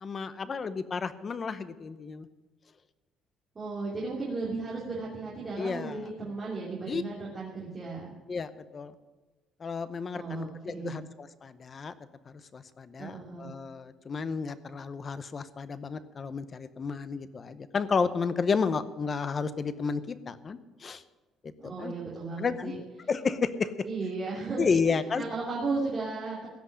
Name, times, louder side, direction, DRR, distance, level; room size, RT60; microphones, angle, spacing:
voice 1, 0.0-2.3 5.6-6.1 6.9-7.0 8.3-8.9 9.6-11.9 12.3-21.0 21.4-21.9 22.4-22.7 23.1-23.7 24.6-25.2, left 5 dB, 30° left, 13 dB, 0.7 m, -32 dB
voice 2, 3.5-8.1 10.1-11.0 13.0-13.5 21.6-22.8 23.8-26.5, right 3 dB, 25° right, -6 dB, 2.9 m, -35 dB
16.5 x 6.1 x 9.8 m, 1.2 s
cardioid pair, 165°, 0 cm